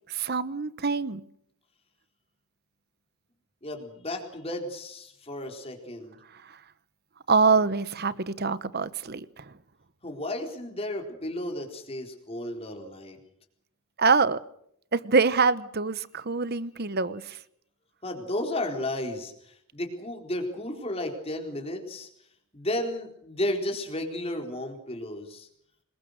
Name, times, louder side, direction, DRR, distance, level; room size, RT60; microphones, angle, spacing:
voice 1, 0.1-1.2 6.3-6.6 7.3-9.5 14.0-14.4 14.9-17.4, right 4 dB, 45° right, 16 dB, 1.0 m, -25 dB
voice 2, 3.6-6.2 10.0-13.2 18.0-22.1 22.5-25.5, left 1 dB, 25° left, 3 dB, 4.2 m, -33 dB
26.5 x 22.0 x 6.6 m, 0.71 s
head